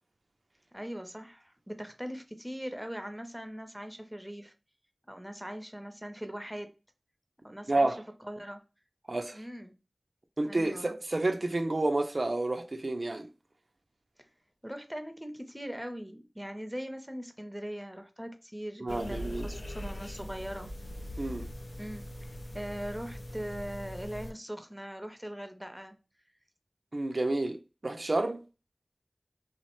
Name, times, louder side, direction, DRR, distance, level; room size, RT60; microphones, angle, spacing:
voice 1, 0.7-4.5 5.1-6.7 7.4-8.0 8.2-8.6 9.3-9.7 10.4-11.0 14.2-14.3 14.6-20.7 21.8-26.0, equal, 10° right, 0.5 m, -41 dB
voice 2, 7.7-8.0 9.1-9.4 10.4-13.3 18.8-19.5 21.2-21.5 26.9-28.4, right 2 dB, 65° right, 0.3 m, -30 dB
sound 1, 18.9-24.3, equal, 85° left, 0.4 m, -41 dB
2.9 x 2.0 x 2.9 m
wide cardioid pair, 40°, 0 cm